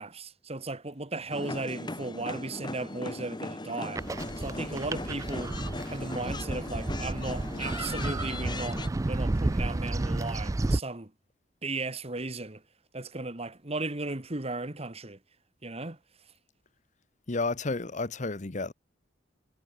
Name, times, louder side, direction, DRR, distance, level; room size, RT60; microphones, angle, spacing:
voice 1, 0.0-5.5 5.9-11.1 11.6-12.6 12.9-15.2 15.6-16.0, right 2 dB, 35° right, 1.8 m, -36 dB
sound 1, 1.3-8.9, left 2 dB, 25° left, 1.8 m, -38 dB
sound 2, 4.0-10.8, right 2 dB, 20° right, 0.3 m, -31 dB
voice 2, 17.3-18.7, left 3 dB, 40° left, 1.0 m, -31 dB
head